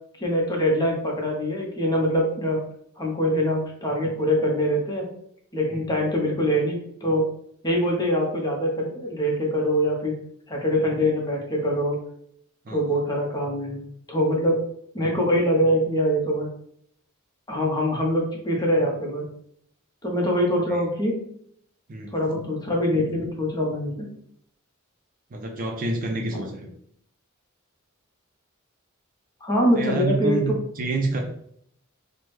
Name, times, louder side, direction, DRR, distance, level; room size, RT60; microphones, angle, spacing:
voice 1, 0.2-2.6 3.0-5.1 5.5-7.2 7.6-10.1 10.5-12.0 12.7-14.6 14.9-16.5 17.5-19.3 20.0-21.1 22.1-24.1 29.4-30.5, equal, 20° left, -1 dB, 0.7 m, -24 dB
voice 2, 5.7-6.1 12.6-13.0 20.7-20.8 21.9-22.1 25.3-26.7 29.7-31.2, right 2 dB, 40° right, 2 dB, 0.4 m, -28 dB
3.3 x 2.0 x 3.1 m, 0.67 s
head